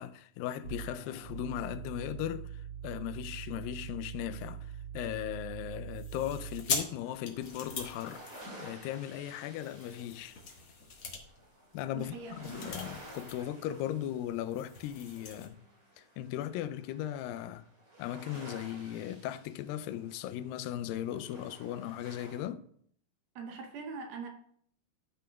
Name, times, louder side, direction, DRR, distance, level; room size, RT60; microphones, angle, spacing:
voice 1, 0.0-8.2 8.6-10.4 11.7-15.6 16.0-17.7 18.0-22.6, left 12 dB, 80° left, 2.1 m, -38 dB
sound 1, 0.6-6.8, right 9 dB, 45° right, 3.3 m, -43 dB
sound 2, 5.9-9.0 9.6-13.5 13.7-13.9 14.2-15.5, left 5 dB, 55° left, 1.5 m, -41 dB
sound 3, 7.0-22.4, right 1 dB, 25° right, 3.8 m, -53 dB
voice 2, 11.9-12.7 23.4-24.3, right 5 dB, 75° right, 2.6 m, -42 dB
14.0 x 9.0 x 2.3 m
omnidirectional pair, 4.5 m